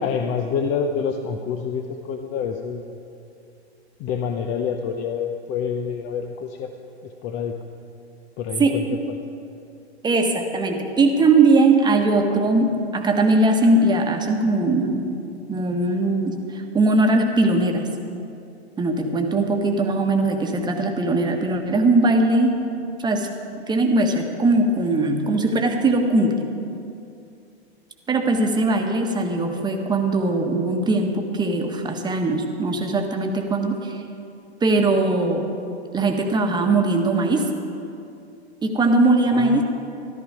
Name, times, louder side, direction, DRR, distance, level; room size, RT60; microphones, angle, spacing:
voice 1, 0.0-2.8 4.0-6.7 7.0-7.6 8.4-9.0 39.3-39.6, left 6 dB, 30° left, 5 dB, 0.7 m, -27 dB
voice 2, 10.0-15.0 15.5-17.9 18.8-22.6 23.0-23.3 23.7-26.4 28.1-34.0 34.6-35.5 35.9-37.5 38.6-39.6, right 2 dB, 15° right, 3 dB, 1.3 m, -20 dB
14.0 x 13.0 x 4.8 m, 2.5 s
figure-of-eight pair, 105°, 33 cm